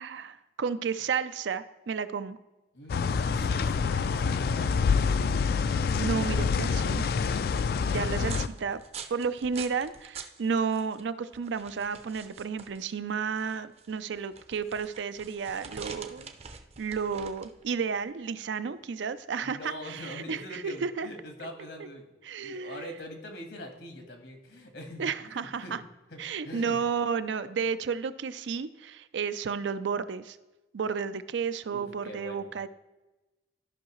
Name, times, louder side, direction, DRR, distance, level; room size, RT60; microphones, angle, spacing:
voice 1, 0.0-2.4 6.0-7.0 7.9-8.8 9.1-16.3 16.8-21.1 22.2-22.8 25.0-25.8 26.2-30.4 30.7-32.7, right 6 dB, 90° right, 13 dB, 0.4 m, -32 dB
voice 2, 2.7-5.0 19.4-22.1 22.4-25.8 26.1-26.8 31.7-32.5, left 1 dB, 75° left, 4 dB, 1.5 m, -43 dB
sound 1, 2.9-8.5, left 5 dB, 55° left, 0.3 m, -27 dB
sound 2, 6.2-20.7, right 6 dB, 35° right, 0.5 m, -47 dB
13.0 x 5.6 x 3.1 m, 1.1 s
head